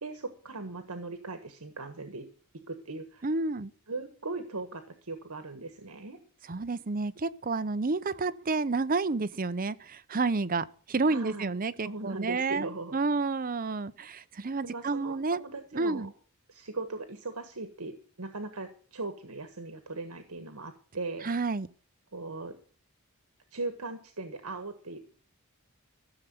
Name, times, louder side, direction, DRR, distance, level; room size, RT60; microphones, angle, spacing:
voice 1, 0.0-2.3 2.7-3.3 3.9-6.2 11.1-11.6 11.8-13.0 14.6-16.1 16.5-21.3 22.1-22.6 23.5-25.0, right 3 dB, 80° right, 1.5 m, -39 dB
voice 2, 3.2-3.7 6.5-15.4 15.7-16.1 21.2-21.7, right 3 dB, 40° right, 0.7 m, -30 dB
14.5 x 6.9 x 9.4 m
head